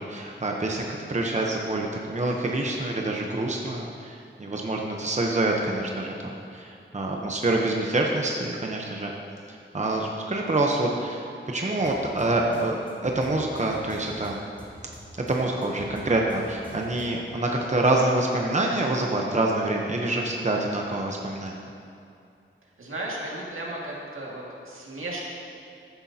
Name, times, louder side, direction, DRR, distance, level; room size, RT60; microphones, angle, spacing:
voice 1, 0.0-9.1 9.5-12.8 13.0-14.4 15.3-21.7, right 2 dB, 35° right, 0 dB, 0.9 m, -26 dB
sound 1, 11.8-17.3, right 1 dB, 10° left, 1.8 m, -46 dB
voice 2, 22.8-25.2, right 1 dB, 80° right, -4 dB, 2.1 m, -35 dB
15.0 x 9.8 x 2.9 m, 2.6 s
wide cardioid pair, 85°, 21 cm